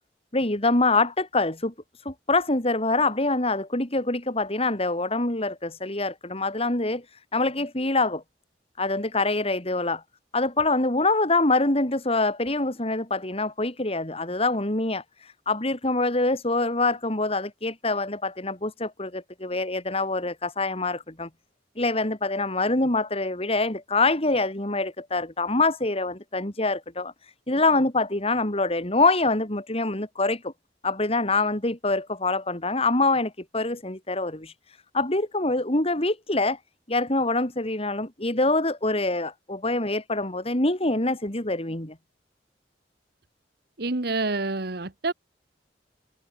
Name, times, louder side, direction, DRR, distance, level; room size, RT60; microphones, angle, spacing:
voice 1, 0.3-8.2 8.8-10.0 10.3-21.3 21.8-30.5 30.8-36.6 36.9-41.9, left 2 dB, 30° left, 3.1 m, -25 dB
voice 2, 43.8-45.1, right 3 dB, 60° right, 1.3 m, -27 dB
head